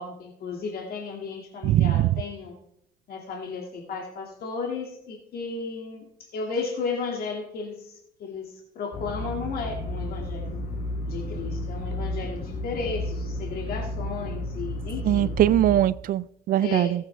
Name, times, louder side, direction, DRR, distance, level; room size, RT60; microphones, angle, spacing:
voice 1, 0.0-2.5 3.1-6.1 6.3-10.6 11.1-15.4 16.6-16.9, left 4 dB, 65° left, 1 dB, 2.2 m, -34 dB
voice 2, 1.6-2.1 15.0-16.9, right 13 dB, 55° right, 20 dB, 0.4 m, -21 dB
sound 1, 8.9-15.8, left 1 dB, 50° left, 3.3 m, -32 dB
19.5 x 8.4 x 3.4 m, 0.73 s
cardioid pair, 110°, 17 cm